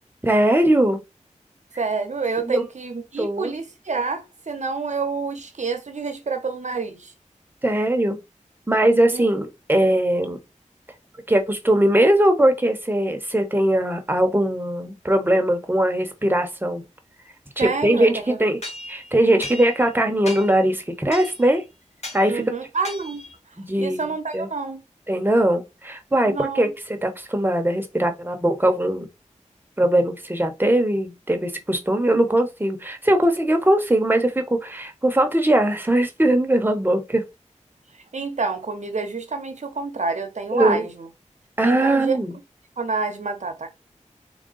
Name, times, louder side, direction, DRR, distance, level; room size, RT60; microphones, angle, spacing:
voice 1, 0.2-1.0 2.4-2.6 3.2-3.5 7.6-8.2 8.7-10.4 11.3-16.8 17.6-18.6 18.9-21.6 22.1-22.4 23.6-24.5 25.1-26.7 27.0-29.1 29.8-37.2 40.5-40.8 41.6-42.3, right 1 dB, 15° right, 1.0 m, -20 dB
voice 2, 1.8-7.1 9.1-9.3 17.6-18.4 22.3-23.3 23.8-24.8 26.2-26.7 37.9-41.1 41.6-42.2 42.8-43.7, right 4 dB, 65° right, 0.9 m, -28 dB
sound 1, 18.6-19.9 20.3-20.7 21.1-21.5 22.0-22.3 22.8-23.4, left 2 dB, 60° left, 1.3 m, -36 dB
3.7 x 2.3 x 3.9 m
cardioid pair, 45°, 13 cm